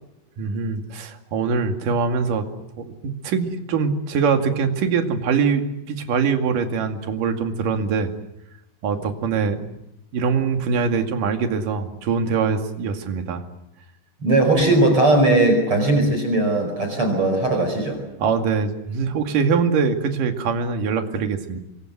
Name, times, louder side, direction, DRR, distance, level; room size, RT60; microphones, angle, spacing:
voice 1, 0.4-2.5 2.8-8.1 8.8-9.8 10.1-13.4 18.2-21.6, right 5 dB, 50° right, 5 dB, 3.3 m, -23 dB
voice 2, 14.2-18.0, right 2 dB, 30° right, 5 dB, 5.3 m, -18 dB
27.5 x 24.5 x 7.9 m, 0.87 s
omnidirectional pair, 5.6 m